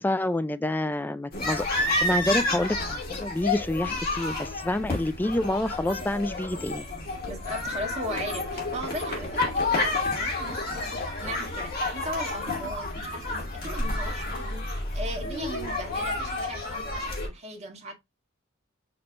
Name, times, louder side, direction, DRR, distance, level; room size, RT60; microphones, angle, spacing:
voice 1, 0.0-6.8, left 1 dB, 10° left, 0.3 m, -28 dB
sound 1, 1.3-17.3, left 2 dB, 50° left, 2.3 m, -30 dB
voice 2, 7.3-17.9, equal, 35° right, 1.7 m, -38 dB
6.0 x 3.2 x 2.5 m
head